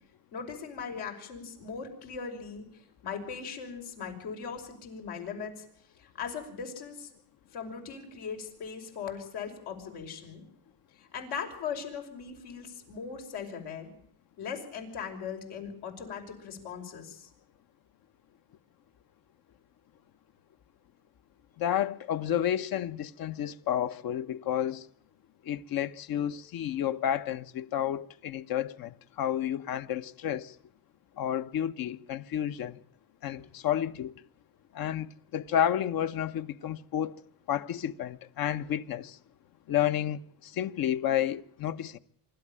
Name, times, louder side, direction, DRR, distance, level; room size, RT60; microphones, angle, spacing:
voice 1, 0.3-5.6 6.0-7.1 7.5-10.4 11.0-13.9 14.4-17.3, left 6 dB, 85° left, 5.9 m, -39 dB
voice 2, 21.6-24.8 25.5-30.5 31.2-32.8 33.2-34.1 34.7-37.1 37.5-39.2 39.7-42.0, left 10 dB, 65° left, 1.1 m, -31 dB
25.5 x 12.5 x 8.9 m
cardioid pair, 105°, 38 cm